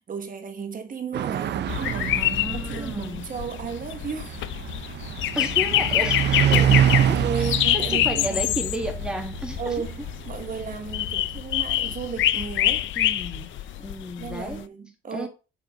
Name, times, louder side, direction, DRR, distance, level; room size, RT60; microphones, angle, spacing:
voice 1, 0.1-4.5 6.4-8.5 9.6-12.9 14.2-15.3, right 6 dB, 45° right, 1.4 m, -34 dB
sound 1, 1.1-12.1, right 9 dB, 60° right, 0.5 m, -27 dB
sound 2, 1.7-14.6, left 13 dB, 75° left, 0.4 m, -26 dB
voice 2, 2.1-3.2 5.3-6.4 7.1-7.2 7.7-9.7 12.9-13.5 13.8-14.6 15.1-15.3, equal, 5° right, 1.6 m, -33 dB
6.6 x 4.4 x 3.6 m
cardioid pair, 90°, 20 cm